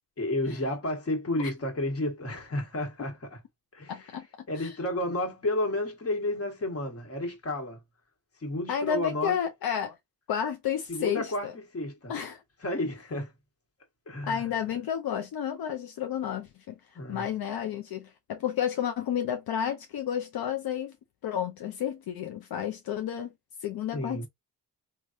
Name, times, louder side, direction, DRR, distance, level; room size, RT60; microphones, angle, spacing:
voice 1, 0.2-3.4 3.7-4.1 4.5-7.8 8.4-9.4 10.9-12.1 12.6-13.3 14.1-14.4 16.9-17.3 23.9-24.3, left 1 dB, 40° left, 1.4 m, -31 dB
voice 2, 3.9-4.3 4.5-4.7 8.7-9.9 10.3-11.5 12.1-12.4 14.2-16.7 17.1-20.9 21.2-23.3 23.6-24.3, left 9 dB, 80° left, 0.6 m, -31 dB
3.3 x 2.3 x 2.5 m
cardioid pair, 75°, 36 cm